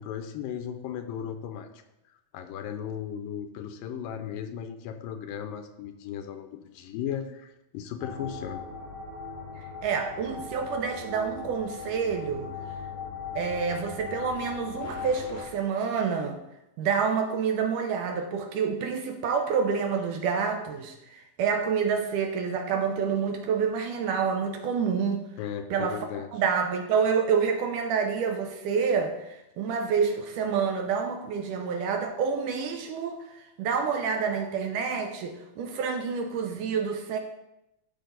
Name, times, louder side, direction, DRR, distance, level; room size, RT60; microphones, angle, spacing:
voice 1, 0.0-1.7 2.3-8.6 25.4-26.3, left 9 dB, 85° left, 7 dB, 2.3 m, -36 dB
sound 1, 8.0-15.4, left 5 dB, 70° left, 4.5 m, -39 dB
voice 2, 9.6-12.5 13.4-16.4 16.8-25.2 25.7-26.0 26.3-33.2 33.6-37.2, right 6 dB, 75° right, 5 dB, 2.2 m, -28 dB
13.0 x 5.3 x 4.0 m, 0.88 s
omnidirectional pair, 4.1 m